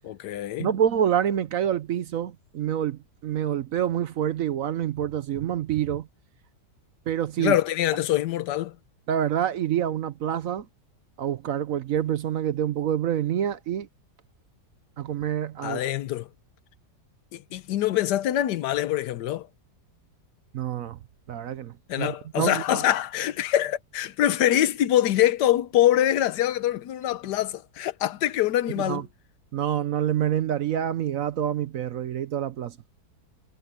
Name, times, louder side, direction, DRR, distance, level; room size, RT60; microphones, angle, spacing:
voice 1, 0.0-0.7 7.4-8.8 15.6-16.3 17.3-19.5 21.9-29.0, left 12 dB, 85° left, 1.4 m, -24 dB
voice 2, 0.6-6.1 7.1-7.5 9.1-10.7 11.2-13.9 15.0-15.8 20.5-21.0 21.3-22.8 28.8-29.0 29.5-32.8, right 10 dB, 60° right, 1.0 m, -27 dB
omnidirectional pair, 1.8 m